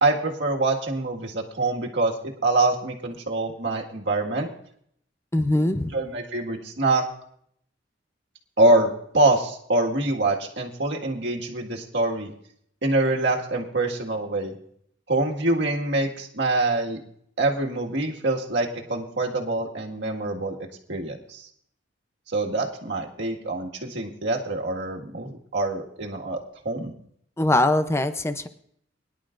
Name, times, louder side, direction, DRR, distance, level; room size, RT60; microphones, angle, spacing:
voice 1, 0.0-4.5 5.9-7.0 8.6-12.3 12.8-14.5 15.1-17.0 17.4-20.6 20.9-21.5 22.3-26.4 26.7-26.9, right 2 dB, 70° right, 0 dB, 1.8 m, -25 dB
voice 2, 5.3-5.9 27.4-28.5, left 1 dB, 15° left, 10 dB, 0.6 m, -22 dB
22.5 x 11.0 x 2.5 m, 0.67 s
head